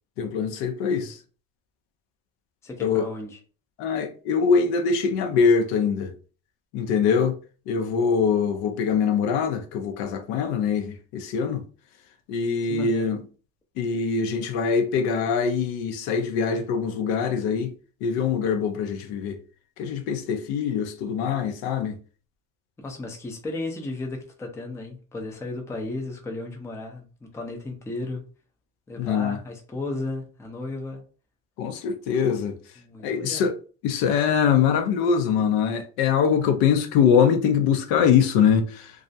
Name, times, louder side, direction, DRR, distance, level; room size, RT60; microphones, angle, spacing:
voice 1, 0.2-1.2 2.8-3.0 3.8-6.1 6.7-7.4 7.7-11.6 12.3-13.2 13.8-17.7 18.0-19.4 19.8-21.9 29.0-29.4 31.6-32.5 33.0-33.6 33.8-38.9, left 6 dB, 70° left, 0.6 m, -23 dB
voice 2, 2.6-3.4 12.6-13.1 22.8-28.2 28.9-31.0 32.8-33.5, left 2 dB, 5° left, 0.4 m, -34 dB
2.4 x 2.0 x 2.6 m
supercardioid pair, 110°, 39 cm